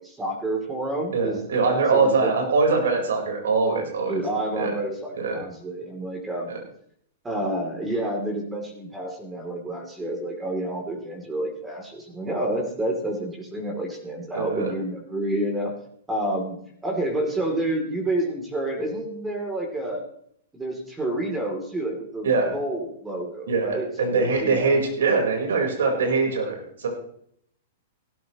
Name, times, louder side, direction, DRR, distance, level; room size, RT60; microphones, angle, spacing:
voice 1, 0.0-2.3 4.1-6.6 7.2-15.7 16.1-20.1 20.5-24.8, right 1 dB, 10° right, 0 dB, 3.1 m, -29 dB
voice 2, 1.1-4.2 4.6-4.7 5.2-5.4 6.5-6.6 14.3-14.7 22.2-22.5 23.5-26.9, right 4 dB, 75° right, 2 dB, 4.4 m, -23 dB
16.5 x 13.5 x 3.1 m, 0.67 s
hypercardioid pair, 110°, 0 cm